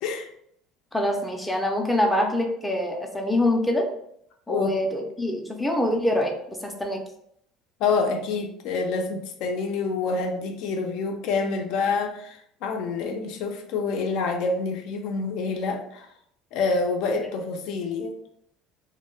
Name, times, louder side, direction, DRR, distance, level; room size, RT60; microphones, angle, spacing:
voice 1, 0.9-3.9 4.5-6.3 6.6-7.0, left 1 dB, 5° left, 1 dB, 0.4 m, -24 dB
voice 2, 4.5-4.8 7.8-16.1 16.5-18.1, left 4 dB, 70° left, 3 dB, 0.4 m, -27 dB
2.2 x 2.1 x 3.0 m, 0.71 s
cardioid pair, 120°, 0 cm